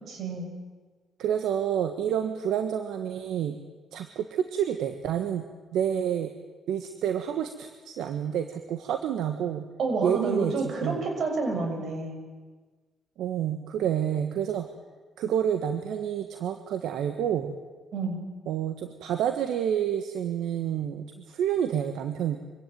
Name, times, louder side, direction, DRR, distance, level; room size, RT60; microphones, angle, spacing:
voice 1, 0.1-0.5 9.8-12.2 17.9-18.2, right 3 dB, 60° right, 3 dB, 6.7 m, -29 dB
voice 2, 1.2-3.6 3.9-5.4 5.7-6.3 6.7-9.7 10.0-11.0 13.2-14.7 15.2-17.5 18.5-22.4, right 9 dB, 80° right, 7 dB, 1.5 m, -29 dB
24.5 x 16.5 x 9.2 m, 1.4 s
cardioid pair, 90°, 0 cm